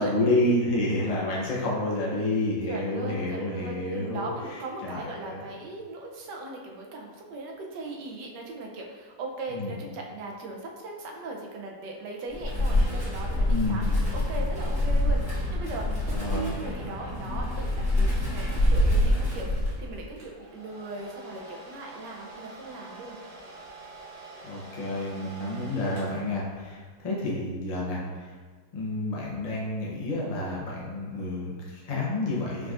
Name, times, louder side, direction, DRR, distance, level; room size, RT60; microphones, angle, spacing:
voice 1, 0.0-4.3 4.8-5.5 9.5-9.7 13.5-13.9 16.1-16.6 24.4-28.3 28.7-32.7, left 1 dB, 45° left, -4 dB, 0.5 m, -29 dB
voice 2, 2.7-23.2, right 2 dB, 80° right, 0 dB, 1.3 m, -38 dB
Wind, 12.3-20.1, left 1 dB, 5° right, 1.2 m, -26 dB
Domestic sounds home sounds, 20.2-26.8, right 2 dB, 65° right, 1.5 m, -46 dB
4.7 x 3.8 x 2.4 m, 1.5 s
omnidirectional pair, 1.9 m